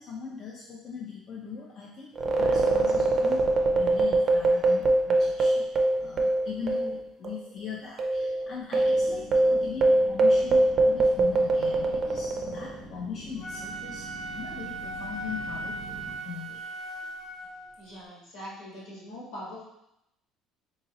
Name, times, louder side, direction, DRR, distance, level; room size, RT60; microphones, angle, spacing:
voice 1, 0.0-3.4 3.7-5.7 6.0-14.1 14.4-16.7 17.0-17.1, left 6 dB, 40° left, -3 dB, 0.4 m, -40 dB
sound 1, 2.2-7.0 7.2-7.4 8.0-12.8, right 2 dB, 35° right, 0.4 m, -23 dB
sound 2, 8.7-16.2, left 1 dB, 10° left, 0.7 m, -45 dB
Wind instrument woodwind instrument, 13.3-17.7, right 2 dB, 60° left, 1.2 m, -38 dB
voice 2, 17.8-19.6, equal, 85° left, -6 dB, 1.5 m, -42 dB
3.6 x 2.9 x 2.9 m, 0.82 s
cardioid pair, 160°, 0 cm